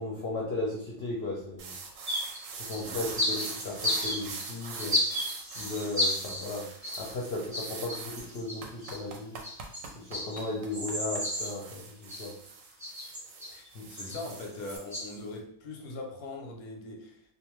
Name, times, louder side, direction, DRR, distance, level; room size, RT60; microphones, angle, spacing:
voice 1, 0.0-1.7 2.5-5.2 5.6-6.7 7.0-9.4 9.9-12.3 13.7-13.9 14.1-14.2, left 2 dB, 60° left, 0.7 m, -36 dB
sound 1, 1.6-14.8, right 5 dB, 70° right, 0.9 m, -43 dB
sound 2, 2.1-2.4 2.7-7.1 7.5-9.0 9.4-11.5 12.1-12.5 12.8-13.7 14.0-15.1, left 1 dB, 30° right, 0.3 m, -33 dB
voice 2, 13.5-17.2, left 2 dB, 90° left, 1.1 m, -41 dB
2.5 x 2.4 x 3.0 m
omnidirectional pair, 1.5 m